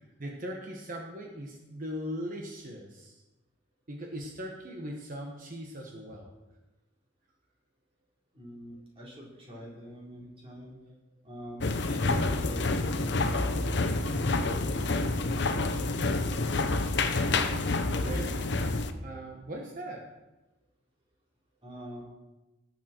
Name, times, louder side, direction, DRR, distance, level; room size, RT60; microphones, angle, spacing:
voice 1, 0.2-3.1 3.9-6.3 18.0-18.5 19.0-20.1, equal, 45° right, 0 dB, 1.4 m, -39 dB
voice 2, 8.3-10.7 11.2-13.6 14.0-16.7 21.6-22.0, equal, 30° right, -5 dB, 4.1 m, -45 dB
sound 1, 11.6-18.9, left 3 dB, 65° left, 0.8 m, -28 dB
18.0 x 7.4 x 4.5 m, 1.1 s
head